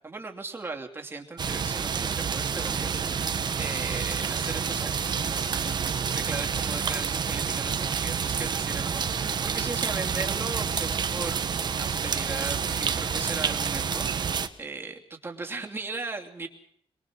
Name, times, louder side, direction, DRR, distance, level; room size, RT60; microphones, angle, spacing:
voice 1, 0.0-5.8 6.1-11.4 11.8-16.5, right 3 dB, 20° right, 3 dB, 2.8 m, -38 dB
sound 1, 1.4-14.5, right 6 dB, 40° right, 1.3 m, -28 dB
23.5 x 21.5 x 6.3 m, 0.64 s
wide cardioid pair, 165°, 11 cm